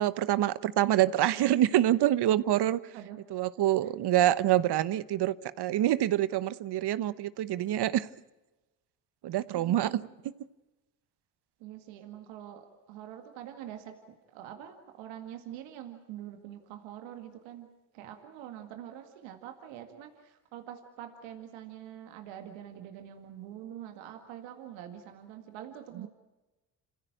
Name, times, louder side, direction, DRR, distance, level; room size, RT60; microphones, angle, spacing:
voice 1, 0.0-2.8 3.3-8.1 9.2-10.0 26.0-26.1, right 13 dB, 60° right, 1.1 m, -26 dB
voice 2, 9.5-10.1 11.6-13.9 14.3-17.7 17.9-26.1, right 11 dB, 80° right, 2.1 m, -45 dB
27.5 x 15.5 x 8.9 m
supercardioid pair, 60°, 45 cm